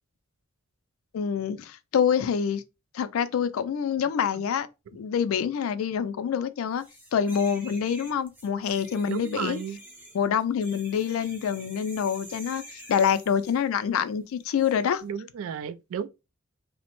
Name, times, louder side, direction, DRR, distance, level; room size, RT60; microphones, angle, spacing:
voice 1, 1.1-2.6 2.9-4.7 4.9-6.8 7.1-9.6 10.1-15.0, left 7 dB, 80° left, 0.3 m, -26 dB
sound 1, 6.8-13.7 14.6-14.8, right 1 dB, 10° right, 0.6 m, -47 dB
voice 2, 9.1-9.8 15.0-16.1, right 8 dB, 80° right, 0.3 m, -33 dB
2.8 x 2.1 x 2.9 m
head